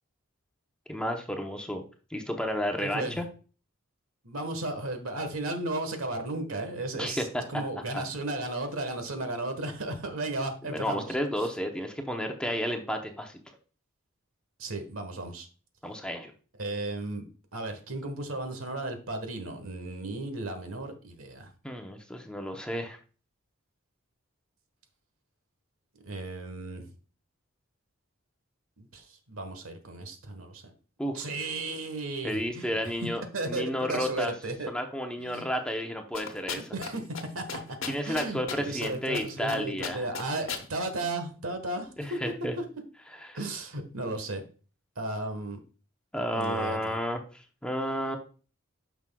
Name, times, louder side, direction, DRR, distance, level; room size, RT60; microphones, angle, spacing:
voice 1, 0.9-1.8 2.1-3.3 7.0-7.4 7.9-8.0 10.7-13.3 15.8-16.3 21.6-23.0 31.0-31.3 32.2-34.3 34.7-36.7 37.9-40.1 42.0-42.5 43.3-43.4 46.1-48.2, equal, 5° left, 4 dB, 0.7 m, -32 dB
voice 2, 2.8-3.2 4.2-11.1 14.6-15.5 16.6-17.2 17.5-21.5 26.0-26.9 28.8-30.6 31.1-33.1 33.3-34.7 35.2-35.5 36.5-37.1 37.3-37.6 38.0-42.2 42.6-42.7 43.3-44.4 45.0-45.6 46.3-47.0, right 2 dB, 80° right, 7 dB, 1.3 m, -35 dB
sound 1, 36.1-36.9 37.1-37.2 37.5-38.9 39.1-39.6 39.8-40.6, left 6 dB, 65° left, 1.0 m, -35 dB
9.2 x 6.1 x 2.3 m, 0.38 s
head